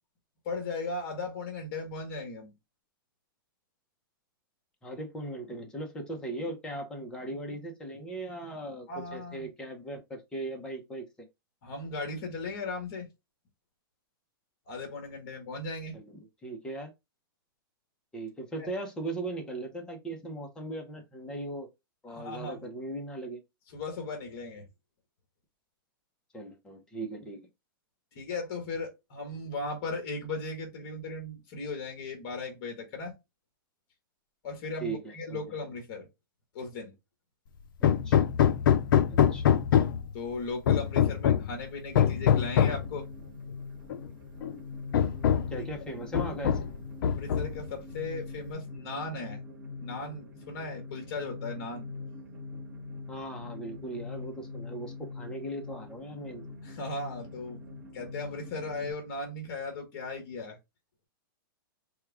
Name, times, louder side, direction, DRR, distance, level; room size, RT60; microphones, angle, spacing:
voice 1, 0.4-2.5 8.9-9.5 11.6-13.1 14.7-16.0 18.6-18.7 22.1-22.7 23.7-24.7 28.1-33.1 34.4-36.1 36.5-36.9 40.1-43.1 47.0-49.4 49.8-51.9 56.6-57.6 57.9-60.6, left 3 dB, 40° left, 1.6 m, -37 dB
voice 2, 4.8-11.3 15.9-16.9 18.1-21.7 22.0-23.4 26.3-27.4 34.8-35.4 38.0-38.2 39.1-39.6 45.5-46.6 53.1-56.4, right 1 dB, 5° left, 0.8 m, -38 dB
Hammer, 37.8-40.1 40.7-41.5 42.0-42.9 43.9-44.0 44.4-44.5 44.9-45.6 46.1-46.8 47.0-47.7, left 9 dB, 65° left, 0.5 m, -24 dB
sound 1, 42.2-58.9, left 3 dB, 15° right, 1.0 m, -43 dB
4.6 x 2.3 x 3.5 m
supercardioid pair, 165°, 12 cm